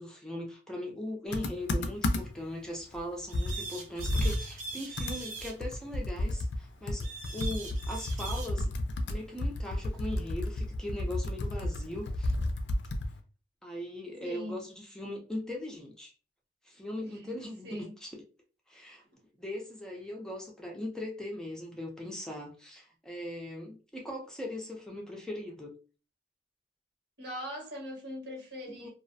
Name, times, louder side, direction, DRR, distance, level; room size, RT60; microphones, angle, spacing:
voice 1, 0.0-7.1 7.3-8.7 9.1-12.3 13.6-16.1 16.6-18.2 18.7-19.0 19.4-25.7 28.7-28.9, left 1 dB, 5° left, 0.4 m, -39 dB
Computer keyboard, 1.3-2.5 2.9-3.0 3.3-13.2, left 1 dB, 85° left, 0.4 m, -32 dB
sound 1, 3.3-5.6 7.0-8.5, right 4 dB, 45° right, 0.6 m, -41 dB
voice 2, 14.2-14.6 17.0-17.9 27.2-28.9, equal, 80° right, 1.2 m, -41 dB
2.4 x 2.1 x 2.6 m
head